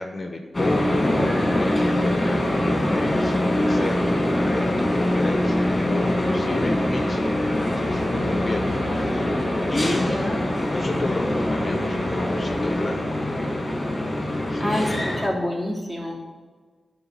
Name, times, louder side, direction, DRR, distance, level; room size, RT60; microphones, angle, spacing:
voice 1, 0.0-9.2 9.7-10.2 10.7-13.2 14.5-14.8, left 2 dB, 35° left, 3 dB, 0.9 m, -31 dB
sound 1, 0.5-15.3, left 1 dB, 20° left, 2.1 m, -23 dB
voice 2, 14.6-16.1, left 1 dB, 20° right, -4 dB, 3.1 m, -27 dB
11.5 x 3.8 x 7.3 m, 1.5 s
wide cardioid pair, 90°, 0 cm